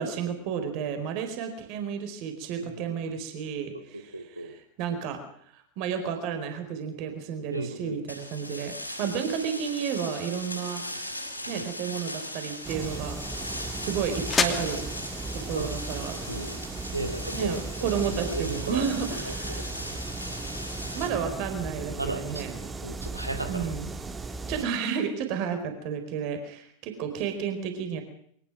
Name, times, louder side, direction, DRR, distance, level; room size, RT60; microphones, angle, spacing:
voice 1, 0.0-5.2 5.5-10.8 11.5-13.2 13.7-14.8 15.3-16.1 17.3-19.7 20.9-22.6 23.5-23.9 24.5-28.0, right 7 dB, 45° right, 6 dB, 4.5 m, -32 dB
voice 2, 3.9-4.5 7.5-8.0 9.0-9.1 11.5-11.7 15.5-15.7 16.3-16.6 16.9-17.9 18.3-18.9 19.3-19.7 22.0-23.7, right 2 dB, 85° right, 9 dB, 2.6 m, -35 dB
sound 1, 8.1-21.1, left 1 dB, 85° left, 6.8 m, -38 dB
sound 2, 11.9-17.5, left 5 dB, 20° left, 2.6 m, -35 dB
sound 3, 12.6-24.6, right 3 dB, 15° right, 1.9 m, -37 dB
23.5 x 19.0 x 6.2 m, 0.64 s
figure-of-eight pair, 90°, 0 cm